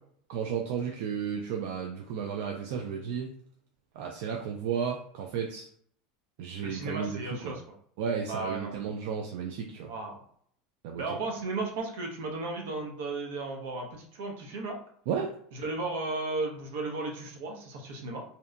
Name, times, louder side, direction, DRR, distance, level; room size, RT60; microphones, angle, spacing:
voice 1, 0.3-3.3 4.0-5.7 6.4-7.6 8.0-9.9 10.8-11.0 15.1-15.3, right 7 dB, 60° right, 1 dB, 0.3 m, -33 dB
voice 2, 6.6-7.6 8.3-8.8 9.8-10.2 11.0-14.8 15.5-18.2, right 3 dB, 80° right, 1 dB, 0.7 m, -35 dB
2.7 x 2.1 x 2.4 m, 0.63 s
supercardioid pair, 160°, 0 cm